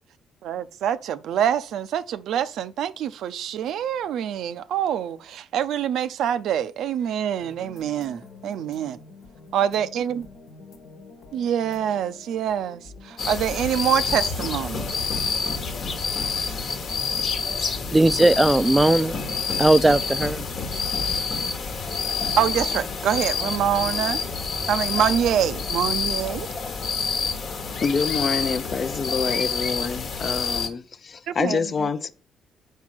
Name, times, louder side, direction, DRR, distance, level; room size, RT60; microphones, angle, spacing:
voice 1, 0.4-9.0 9.5-10.3 11.3-15.0 22.4-24.2 24.7-26.5 31.3-31.9, right 9 dB, 80° right, 0.4 m, -25 dB
sound 1, 7.4-23.2, left 3 dB, 80° left, 1.3 m, -45 dB
sound 2, 13.2-30.7, left 5 dB, 60° left, 1.1 m, -28 dB
voice 2, 17.9-19.2 19.6-20.5, right 2 dB, 15° right, 0.3 m, -18 dB
voice 3, 27.8-32.1, left 5 dB, 45° left, 0.5 m, -26 dB
4.7 x 4.6 x 5.9 m
cardioid pair, 90°, 0 cm